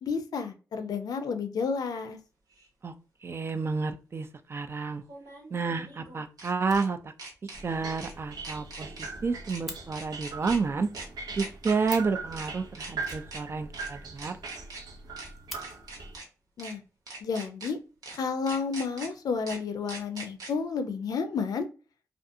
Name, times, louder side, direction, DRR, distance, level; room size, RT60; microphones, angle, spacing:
voice 1, 0.0-2.2 16.6-16.8 17.2-17.8 18.1-21.7, left 5 dB, 75° left, 7 dB, 0.5 m, -31 dB
sound 1, 2.6-2.7 5.0-6.9 7.2-7.6 8.0-8.1 8.4-9.1 9.4-9.6 9.9-10.6 10.9-11.1 11.4-12.0 12.3-12.5 12.7-13.4 13.7-13.9 14.2-14.8 15.2-15.3 15.6-16.2 16.6-16.7 17.1-17.7 18.0-18.2 18.5-19.1 19.5-19.6 19.9-20.5, right 3 dB, 70° right, 1.0 m, -41 dB
voice 2, 3.2-5.0 5.5-7.1 7.6-10.9 11.4-14.4, right 4 dB, 40° right, 8 dB, 0.4 m, -30 dB
Fire, 6.6-7.4 7.7-7.8 8.2-8.3 8.5-8.6 8.8-9.8 11.5-11.6 11.8-12.2 13.0-13.9 14.2-14.3 14.6-14.7 15.1-15.6 16.6-16.8 17.4-18.0, equal, ahead, 0.8 m, -45 dB
sound 2, 7.5-16.2, right 4 dB, 90° right, 0.6 m, -41 dB
2.5 x 2.4 x 2.6 m, 0.34 s
cardioid pair, 95°, 7 cm